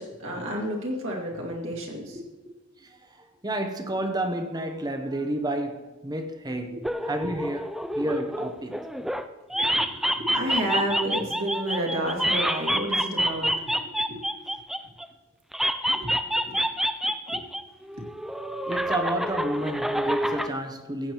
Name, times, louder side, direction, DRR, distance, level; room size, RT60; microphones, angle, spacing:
voice 1, 0.0-2.2 6.7-6.8 9.5-13.8 14.1-14.2 15.9-16.6 17.3-17.4 17.9-18.0, right 1 dB, 60° right, 2.3 m, -31 dB
voice 2, 2.8-8.8 18.7-21.1, right 1 dB, 20° right, 0.8 m, -31 dB
sound 1, 6.8-9.2 9.5-15.1 15.5-17.6 17.9-20.5, equal, ahead, 0.3 m, -27 dB
15.5 x 8.5 x 3.0 m
head